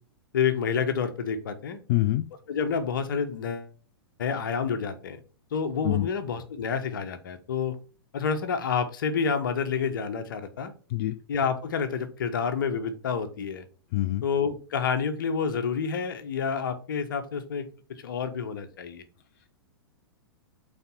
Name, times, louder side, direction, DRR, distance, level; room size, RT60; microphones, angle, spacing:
voice 1, 0.3-1.8 2.5-3.7 4.2-5.2 5.5-7.8 8.1-10.7 11.3-13.6 14.2-17.7 18.0-19.0, left 6 dB, 55° left, 1.2 m, -28 dB
voice 2, 1.9-2.3 5.8-6.1 10.9-11.2 13.9-14.2, left 15 dB, 40° left, 0.4 m, -25 dB
5.7 x 4.3 x 5.7 m
figure-of-eight pair, 105°, 13 cm